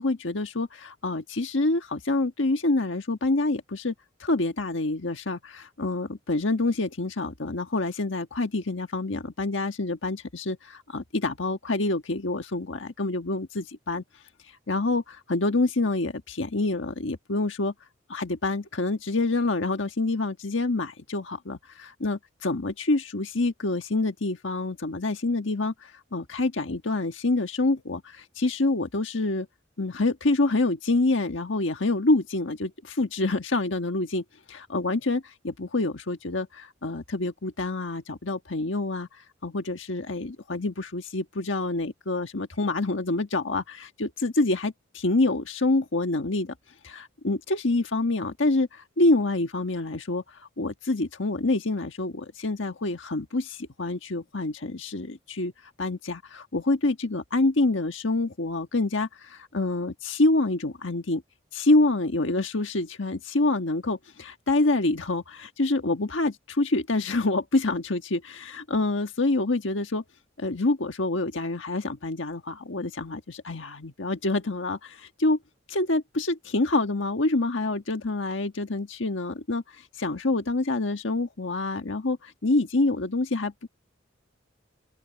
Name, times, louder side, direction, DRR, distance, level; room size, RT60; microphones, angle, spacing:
voice 1, 0.0-3.9 4.2-14.0 14.7-17.7 18.1-29.5 29.8-39.1 39.4-46.5 46.8-50.2 50.6-55.5 55.8-61.2 61.5-70.0 70.4-75.4 75.7-83.7, left 2 dB, 75° left, 1.5 m, -27 dB
open air
head